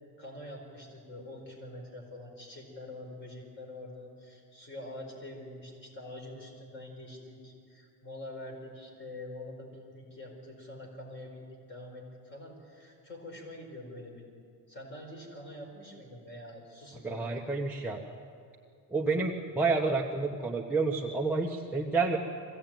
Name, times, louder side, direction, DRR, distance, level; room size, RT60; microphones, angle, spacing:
voice 1, 0.2-14.4 14.7-17.5, left 1 dB, 30° left, 1 dB, 4.7 m, -45 dB
voice 2, 17.0-18.0 18.9-22.2, right 3 dB, 5° right, 2 dB, 1.0 m, -29 dB
22.5 x 16.0 x 9.1 m, 2.4 s
cardioid pair, 170°, 40 cm